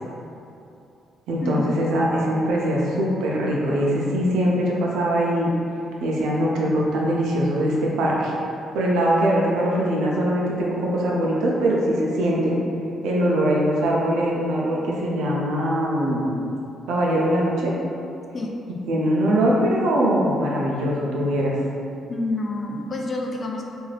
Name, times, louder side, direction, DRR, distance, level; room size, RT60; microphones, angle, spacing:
voice 1, 1.3-5.5 6.0-8.3 8.7-12.6 13.0-16.3 16.9-17.7 18.9-21.6, equal, 85° right, -3 dB, 0.5 m, -22 dB
voice 2, 22.1-23.7, left 2 dB, 40° left, 0 dB, 0.3 m, -28 dB
2.6 x 2.4 x 3.2 m, 2.6 s
cardioid pair, 90°, 0 cm